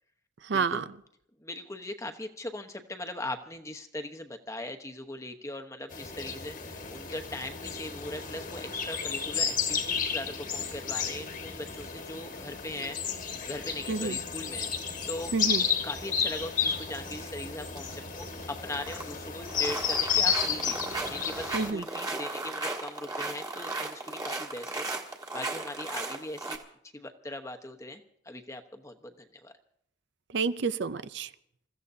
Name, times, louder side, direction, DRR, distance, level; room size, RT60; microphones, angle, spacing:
voice 1, 0.5-0.8 13.9-14.2 15.3-15.6 21.5-21.8 30.3-31.3, right 4 dB, 60° right, 13 dB, 0.5 m, -29 dB
voice 2, 1.4-13.0 13.5-15.3 15.8-20.8 21.1-24.9 25.3-26.6 26.9-29.5, left 1 dB, 15° left, 6 dB, 1.0 m, -40 dB
sound 1, 5.9-21.7, left 6 dB, 45° left, 1.5 m, -32 dB
sound 2, 17.1-17.3 17.7-18.0 18.3-19.1 19.4-26.6, right 2 dB, 20° right, 1.6 m, -36 dB
27.5 x 15.0 x 2.7 m, 0.72 s
head